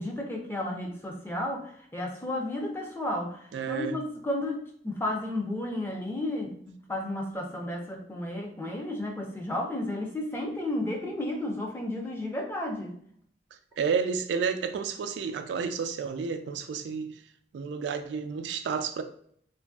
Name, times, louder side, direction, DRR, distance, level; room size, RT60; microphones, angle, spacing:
voice 1, 0.0-3.4 3.7-12.9, left 1 dB, 15° left, 0.4 m, -33 dB
voice 2, 3.5-4.0 13.8-17.2 17.5-19.0, right 6 dB, 85° right, 0.3 m, -31 dB
2.9 x 2.5 x 2.3 m
head